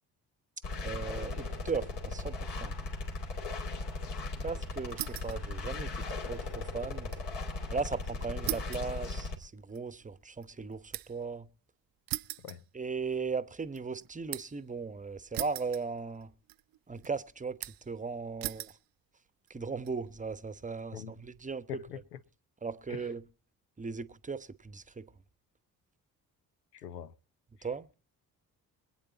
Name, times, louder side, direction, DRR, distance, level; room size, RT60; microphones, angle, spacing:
sound 1, 0.6-9.4, left 3 dB, 55° left, 2.6 m, -37 dB
voice 1, 0.8-2.7 4.4-7.1 7.7-11.5 12.7-16.3 16.9-18.7 19.5-21.8 22.6-23.2 23.8-25.1 27.6-27.9, right 4 dB, 15° right, 1.0 m, -37 dB
sound 2, 4.9-5.4 5.8-7.3 7.6-7.7 8.5-11.3 12.1-13.2 13.6-14.6 15.3-16.2 16.5-17.1 17.6-18.0 18.4-18.8 19.5-19.9, right 16 dB, 50° right, 0.7 m, -40 dB
voice 2, 21.7-22.2 22.9-23.1 26.7-27.1, left 9 dB, 80° left, 0.9 m, -43 dB
24.5 x 9.0 x 4.0 m
figure-of-eight pair, 45°, 47 cm